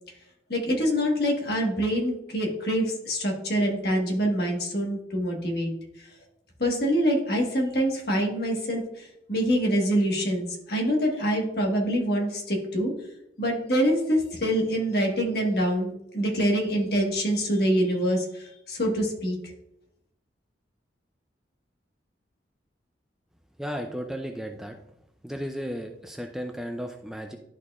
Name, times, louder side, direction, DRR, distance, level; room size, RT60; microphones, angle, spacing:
voice 1, 0.5-5.7 6.6-12.9 13.4-19.4, equal, 55° left, 0 dB, 1.4 m, -25 dB
voice 2, 23.6-24.8 25.2-27.4, equal, ahead, 4 dB, 0.3 m, -34 dB
11.0 x 4.2 x 2.4 m, 0.81 s
head